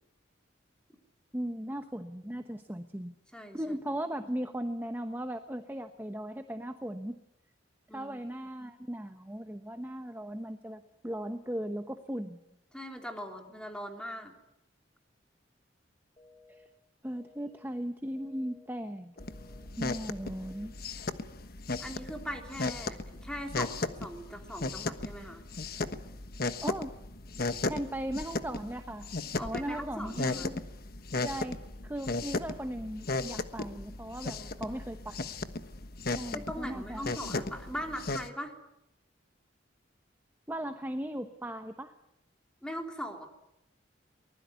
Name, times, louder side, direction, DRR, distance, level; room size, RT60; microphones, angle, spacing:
voice 1, 1.3-3.1 3.5-7.2 7.9-12.4 16.5-16.6 17.0-19.1 19.8-20.7 26.6-26.9 27.6-29.1 29.4-30.6 31.2-31.6 31.8-35.3 36.1-37.1 40.5-41.9, right 1 dB, 10° right, 7 dB, 1.0 m, -37 dB
voice 2, 3.3-3.8 7.9-8.2 12.7-14.3 21.8-25.4 29.4-30.5 34.3-34.8 36.3-38.5 42.6-43.3, equal, 5° left, 3 dB, 3.4 m, -40 dB
sound 1, 16.2-16.7 17.2-17.7 18.2-18.7 19.2-19.7 20.2-20.7, left 3 dB, 25° left, 2.2 m, -58 dB
sound 2, 19.2-38.3, left 3 dB, 50° left, 1.3 m, -36 dB
24.0 x 20.5 x 9.5 m, 0.84 s
head